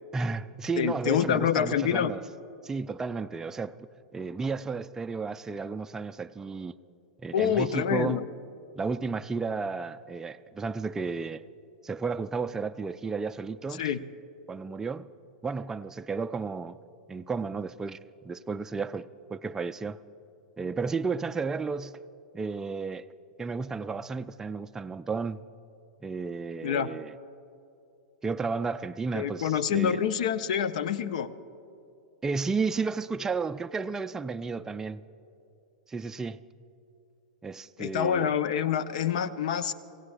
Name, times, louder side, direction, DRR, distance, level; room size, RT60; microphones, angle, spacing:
voice 1, 0.1-2.2 2.6-3.8 4.1-6.7 7.2-8.2 8.8-11.4 11.8-14.0 14.5-15.1 15.4-16.8 17.1-18.0 18.2-20.0 20.6-22.0 22.3-23.1 23.4-25.4 26.0-27.1 28.2-30.0 32.2-35.0 35.9-36.4 37.4-38.4, right 4 dB, 10° right, 0.3 m, -33 dB
voice 2, 0.8-2.1 7.3-8.2 13.8-14.0 26.6-26.9 29.1-31.3 37.8-39.7, left 9 dB, 60° left, 0.6 m, -27 dB
26.5 x 16.5 x 2.4 m
figure-of-eight pair, 100°, 4 cm